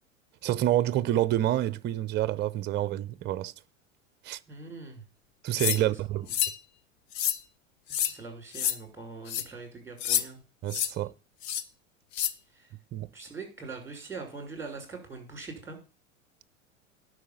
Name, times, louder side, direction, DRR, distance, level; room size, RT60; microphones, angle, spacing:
voice 1, 0.4-3.5 4.2-4.4 5.4-6.3 10.6-11.1 12.9-13.1, right 13 dB, 25° right, 0.6 m, -27 dB
voice 2, 4.5-5.0 5.8-6.3 8.0-10.4 12.5-12.7 13.1-15.8, right 4 dB, 5° right, 6.4 m, -42 dB
sound 1, 5.6-5.8 6.3-6.6 7.1-7.4 7.9-8.1 8.5-8.8 9.3-9.4 10.0-10.2 10.7-10.9 11.4-11.6 12.1-12.3, left 10 dB, 55° left, 1.2 m, -28 dB
11.0 x 6.4 x 7.4 m
figure-of-eight pair, 90°, 39 cm